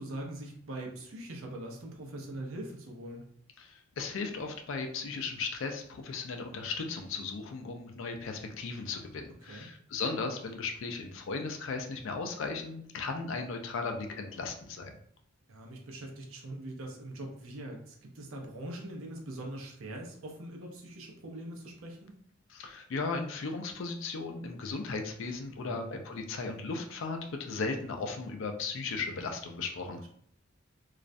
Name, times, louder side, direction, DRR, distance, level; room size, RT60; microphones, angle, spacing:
voice 1, 0.0-3.2 9.4-9.7 15.5-22.1 25.5-26.0 30.0-30.1, right 1 dB, 75° right, 1 dB, 0.6 m, -42 dB
voice 2, 3.6-14.9 22.5-30.1, left 4 dB, 65° left, 4 dB, 0.4 m, -36 dB
2.3 x 2.1 x 2.5 m, 0.65 s
head